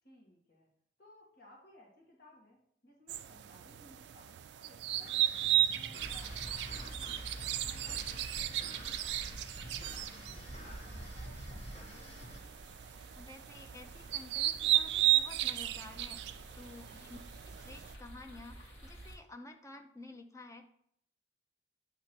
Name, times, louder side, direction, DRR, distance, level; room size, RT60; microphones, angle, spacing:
voice 1, 0.0-0.7 1.0-9.1 9.6-12.6 16.8-17.1, left 1 dB, 60° left, -3 dB, 1.5 m, -61 dB
sound 1, 3.1-17.9, right 13 dB, 70° right, 0.3 m, -35 dB
sound 2, 5.0-12.4, left 1 dB, 35° left, 1.0 m, -52 dB
sound 3, 6.0-19.2, right 1 dB, 80° left, 1.5 m, -49 dB
voice 2, 13.2-17.2 17.5-20.7, left 2 dB, 20° left, 6 dB, 0.5 m, -51 dB
8.1 x 2.9 x 4.4 m, 0.67 s
head